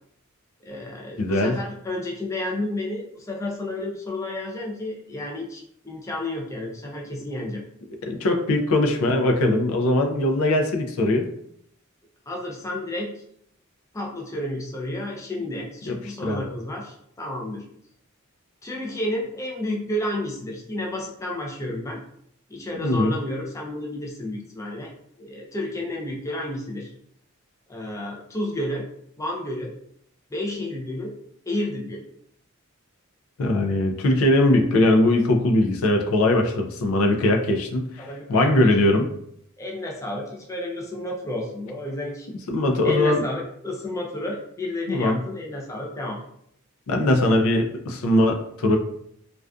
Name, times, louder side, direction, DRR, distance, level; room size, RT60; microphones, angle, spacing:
voice 1, 0.6-7.6 12.3-13.2 13.9-17.6 18.6-22.0 22.5-24.9 25.2-26.9 27.7-28.8 29.2-29.7 30.3-31.2 31.5-32.0 38.0-38.5 39.6-42.3 42.8-46.2, left 1 dB, 15° left, -2 dB, 0.4 m, -31 dB
voice 2, 1.2-1.5 8.1-11.2 15.9-16.0 16.2-16.4 22.7-23.2 33.4-39.1 42.5-43.2 44.9-45.2 46.9-48.8, left 1 dB, 80° left, 3 dB, 0.4 m, -20 dB
2.4 x 2.3 x 2.3 m, 0.69 s
head